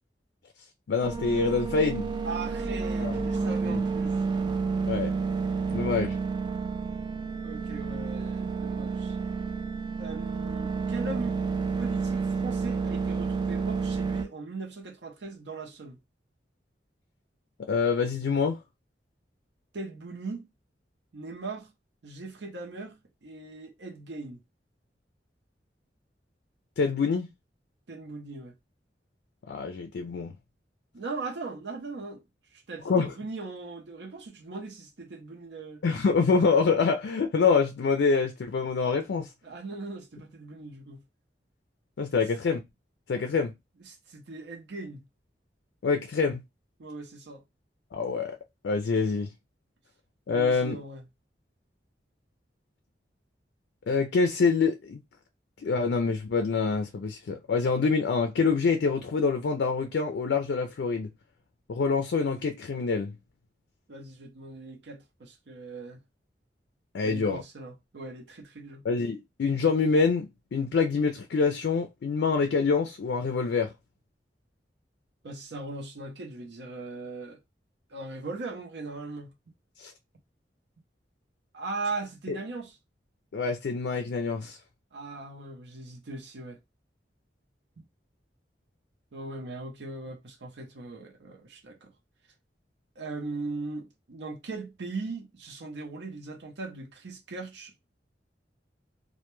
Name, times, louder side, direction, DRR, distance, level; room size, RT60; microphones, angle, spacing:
voice 1, 0.9-2.1 3.0-3.2 3.7-3.8 4.9-5.1 5.7-6.2 17.7-18.6 26.8-27.3 29.5-30.3 32.8-33.1 35.8-39.3 42.0-42.6 43.1-43.5 45.8-46.4 47.9-48.4 48.6-49.3 50.3-50.8 53.9-55.0 55.6-61.1 61.7-63.2 66.9-67.4 68.8-73.7 79.8-79.9 82.3-82.4 83.3-84.6, left 4 dB, 70° left, 0.4 m, -26 dB
sound 1, 1.0-14.2, right 4 dB, 25° right, 0.3 m, -30 dB
voice 2, 2.2-4.2 7.4-9.2 10.0-11.4 11.8-16.0 19.7-20.5 21.1-21.7 22.0-24.4 27.9-28.5 30.9-32.2 32.5-35.8 39.4-41.0 43.8-45.1 46.8-47.4 50.3-51.1 63.9-66.0 67.0-68.8 75.2-77.4 77.9-79.3 81.5-82.8 84.9-86.6 87.8-87.9 89.1-91.9 93.0-97.8, right 3 dB, 75° right, 0.6 m, -39 dB
2.2 x 2.1 x 2.9 m
head